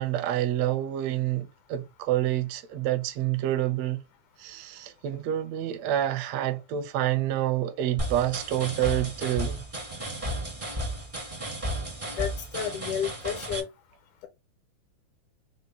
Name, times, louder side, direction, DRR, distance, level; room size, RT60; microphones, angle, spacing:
voice 1, 0.0-4.0 4.4-9.6, right 13 dB, 75° right, 1.6 m, -28 dB
sound 1, 8.0-13.6, right 1 dB, 35° right, 0.5 m, -33 dB
voice 2, 12.1-13.7, left 9 dB, 80° left, 2.3 m, -31 dB
5.3 x 2.2 x 4.1 m
omnidirectional pair, 3.5 m